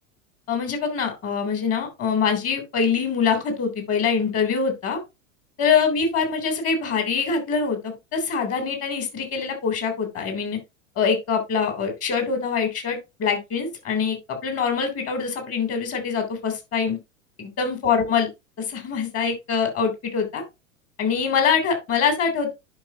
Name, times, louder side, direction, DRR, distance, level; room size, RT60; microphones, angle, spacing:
voice 1, 0.5-5.0 5.6-10.6 10.9-14.2 14.4-17.0 17.4-18.3 18.6-20.4 21.0-22.5, left 6 dB, 35° left, 5 dB, 3.3 m, -24 dB
10.5 x 5.4 x 2.8 m, 0.23 s
hypercardioid pair, 95°, 40 cm